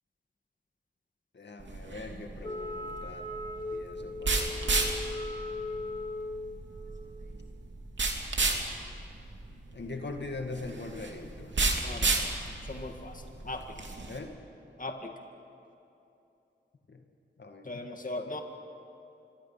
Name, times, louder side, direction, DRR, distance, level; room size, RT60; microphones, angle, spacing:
voice 1, 1.3-3.3 3.7-5.5 9.7-11.5 14.1-14.4 16.9-17.1 17.4-17.9, left 3 dB, 65° left, 4 dB, 2.0 m, -42 dB
sound 1, 1.6-14.2, right 3 dB, 70° right, 2.9 m, -33 dB
Wind instrument woodwind instrument, 2.4-6.6, left 2 dB, 25° left, 2.8 m, -38 dB
voice 2, 11.8-12.2 12.7-13.9 14.8-15.1 17.7-18.4, left 2 dB, 45° left, 4 dB, 1.9 m, -39 dB
26.5 x 23.5 x 5.9 m, 2.8 s
cardioid pair, 45°, 19 cm